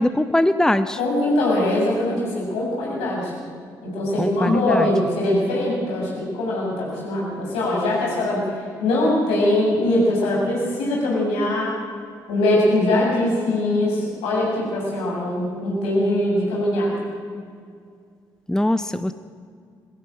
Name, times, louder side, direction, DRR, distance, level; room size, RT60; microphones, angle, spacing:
voice 1, 0.0-1.0 4.2-4.9 18.5-19.1, left 1 dB, 5° left, 12 dB, 1.0 m, -21 dB
voice 2, 1.0-3.3 3.8-8.5 8.8-11.7 12.3-17.0, left 1 dB, 70° left, -3 dB, 7.2 m, -22 dB
22.5 x 15.5 x 7.8 m, 2.2 s
figure-of-eight pair, 40°, 10 cm